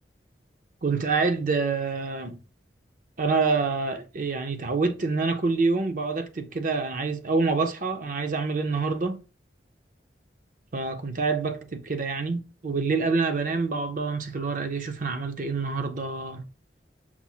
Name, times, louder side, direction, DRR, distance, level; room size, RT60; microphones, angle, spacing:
voice 1, 0.8-2.4 3.2-9.2 10.7-16.5, right 4 dB, 50° right, 0.6 m, -27 dB
5.8 x 2.0 x 4.2 m
head